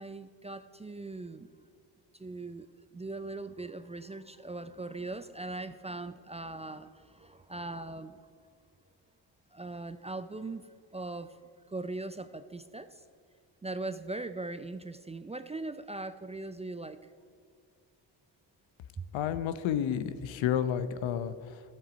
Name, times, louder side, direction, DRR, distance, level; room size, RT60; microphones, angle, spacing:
voice 1, 0.0-1.5 2.1-2.7 2.9-8.2 9.5-10.7 10.9-11.4 11.7-13.0 13.6-17.0 19.0-19.1, right 2 dB, 15° right, 11 dB, 0.3 m, -40 dB
voice 2, 19.1-21.6, left 9 dB, 85° left, 12 dB, 0.8 m, -31 dB
12.5 x 7.9 x 5.0 m, 2.4 s
cardioid pair, 80°, 45 cm